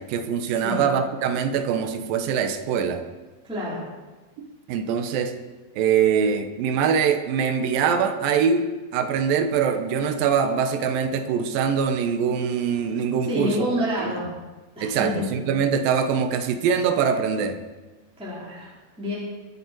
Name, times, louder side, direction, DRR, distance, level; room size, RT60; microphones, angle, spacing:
voice 1, 0.0-3.0 4.4-5.4 5.8-13.7 14.0-14.1 14.8-17.6, right 7 dB, 75° right, 7 dB, 2.2 m, -23 dB
voice 2, 3.4-3.8 13.3-14.3 14.8-15.2 18.2-18.7 19.0-19.1, left 1 dB, ahead, -8 dB, 3.7 m, -28 dB
23.0 x 8.6 x 4.7 m, 1.2 s
omnidirectional pair, 5.1 m